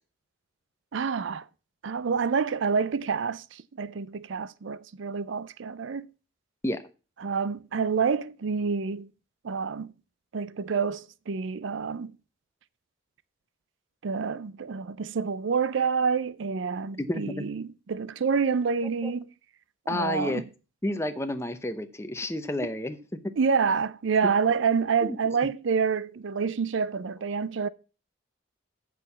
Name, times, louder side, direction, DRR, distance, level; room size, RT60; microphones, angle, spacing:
voice 1, 0.9-1.4 1.8-6.1 7.2-9.1 9.4-9.9 10.3-12.1 14.0-19.2 19.9-20.4 23.4-27.7, right 5 dB, 70° right, 0.4 m, -28 dB
voice 2, 17.0-17.5 19.0-19.1 19.9-20.4 20.8-23.2 25.0-25.2, left 1 dB, 15° left, 0.7 m, -30 dB
7.8 x 6.3 x 6.9 m
head